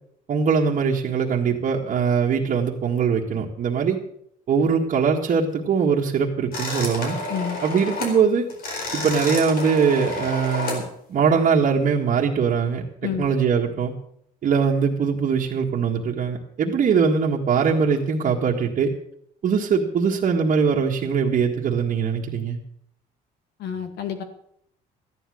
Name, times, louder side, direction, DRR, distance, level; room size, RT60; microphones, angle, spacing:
voice 1, 0.3-4.0 4.5-7.2 7.6-8.5 8.9-10.8 11.1-12.8 13.2-13.9 14.4-18.9 19.4-22.6, right 6 dB, 50° right, -4 dB, 1.7 m, -21 dB
sound 1, 6.5-8.2 8.5-10.8, left 2 dB, 60° left, 4.3 m, -30 dB
voice 2, 23.6-24.2, left 8 dB, 80° left, 8 dB, 2.1 m, -29 dB
13.5 x 10.5 x 6.4 m, 0.69 s
cardioid pair, 110°, 17 cm